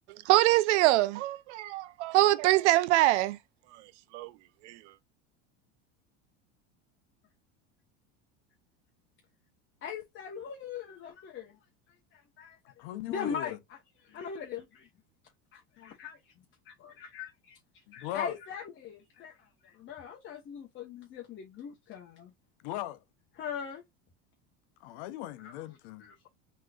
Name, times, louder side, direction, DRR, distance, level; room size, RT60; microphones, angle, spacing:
voice 1, 0.3-3.4 4.1-4.3 4.6-4.8, right 17 dB, 85° right, 0.6 m, -24 dB
voice 2, 9.8-11.6 12.1-12.6 13.1-13.6 14.0-14.9 15.5-16.2 16.6-19.4 19.6-22.3 23.4-23.8 25.4-25.6 26.0-26.3, left 7 dB, 35° left, 0.9 m, -40 dB
voice 3, 12.8-13.6 17.9-18.4 22.6-23.0 24.8-26.1, left 14 dB, 70° left, 0.8 m, -38 dB
3.7 x 3.1 x 2.3 m
supercardioid pair, 120°, 34 cm